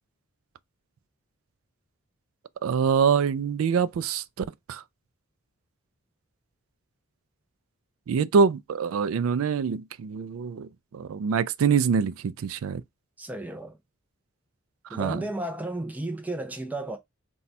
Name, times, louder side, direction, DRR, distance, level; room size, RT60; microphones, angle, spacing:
voice 1, 2.6-4.2 4.7-4.8 8.1-10.7 10.9-12.8 14.9-15.2, right 6 dB, 85° right, 0.3 m, -24 dB
voice 2, 13.2-13.8 14.9-17.0, right 2 dB, 10° right, 0.6 m, -33 dB
4.1 x 2.3 x 4.1 m
head